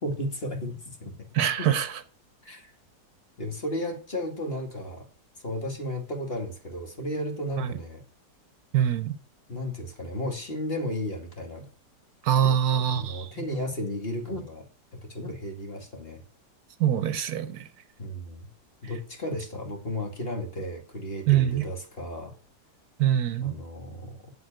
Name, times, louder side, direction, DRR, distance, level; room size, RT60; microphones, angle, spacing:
voice 1, 0.0-1.2 1.6-1.7 2.4-2.7 3.4-5.1 5.4-8.0 9.5-11.7 12.4-12.5 12.9-14.7 14.9-16.2 18.0-18.5 18.8-22.3 23.4-24.3, left 1 dB, 35° left, 2.4 m, -34 dB
voice 2, 1.3-2.0 7.6-7.7 8.7-9.2 12.2-13.3 16.8-17.7 21.3-21.7 23.0-23.6, right 10 dB, 70° right, 1.2 m, -24 dB
7.9 x 7.9 x 8.9 m
omnidirectional pair, 1.8 m